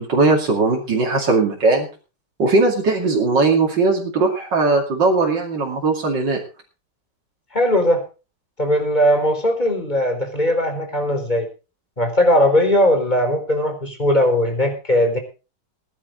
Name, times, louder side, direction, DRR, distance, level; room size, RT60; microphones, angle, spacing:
voice 1, 0.0-1.9 2.4-6.4, right 3 dB, 85° right, -1 dB, 3.2 m, -18 dB
voice 2, 7.5-8.0 8.6-11.5 12.0-15.2, left 1 dB, 25° left, 5 dB, 4.2 m, -18 dB
20.0 x 11.0 x 3.9 m, 0.33 s
omnidirectional pair, 1.9 m